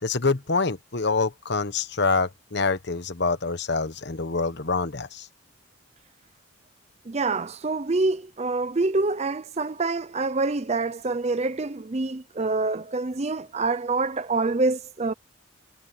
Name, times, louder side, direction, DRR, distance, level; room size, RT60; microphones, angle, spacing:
voice 1, 0.0-5.3, left 4 dB, 55° left, 1.2 m, -26 dB
voice 2, 7.1-15.1, right 3 dB, 30° right, 0.5 m, -26 dB
head